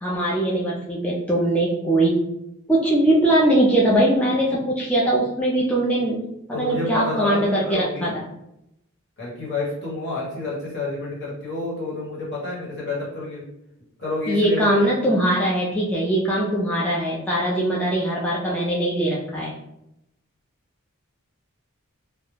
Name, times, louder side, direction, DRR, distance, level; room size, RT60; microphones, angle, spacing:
voice 1, 0.0-2.2 2.7-6.2 6.6-8.1 14.3-19.5, right 1 dB, 5° left, -6 dB, 0.3 m, -21 dB
voice 2, 6.5-8.2 9.2-13.4 14.0-14.9, left 2 dB, 55° left, -5 dB, 1.0 m, -29 dB
2.3 x 2.0 x 3.1 m, 0.84 s
head